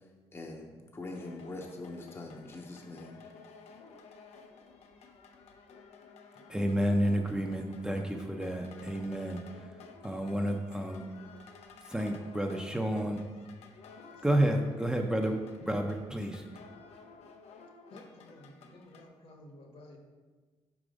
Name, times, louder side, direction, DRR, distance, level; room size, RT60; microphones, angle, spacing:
voice 1, 0.3-3.2, left 2 dB, 20° left, 2 dB, 0.7 m, -43 dB
sound 1, 1.0-19.1, left 5 dB, 80° left, 0.6 m, -54 dB
voice 2, 6.5-9.8 10.0-11.0 11.8-13.2 14.2-15.4 15.7-16.5, right 1 dB, 5° right, 2 dB, 0.5 m, -30 dB
voice 3, 17.9-20.0, left 1 dB, 60° left, 2 dB, 1.3 m, -53 dB
4.9 x 4.9 x 5.1 m, 1.4 s
cardioid pair, 90°, 11 cm